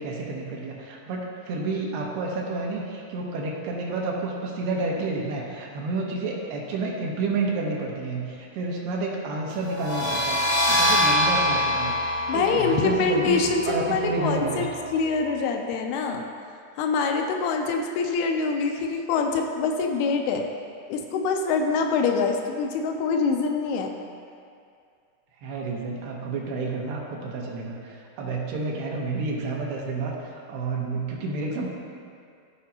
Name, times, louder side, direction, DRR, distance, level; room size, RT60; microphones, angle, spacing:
voice 1, 0.0-10.4 10.7-11.9 12.3-13.4 13.7-14.7 25.4-30.2 30.5-31.7, right 3 dB, 80° right, -1 dB, 2.9 m, -30 dB
sound 1, 9.7-15.2, left 1 dB, 55° left, 1.3 m, -25 dB
voice 2, 12.3-16.2 16.8-20.5 20.9-23.9, left 4 dB, 80° left, 3 dB, 2.5 m, -25 dB
15.0 x 5.1 x 2.8 m, 2.3 s
omnidirectional pair, 4.7 m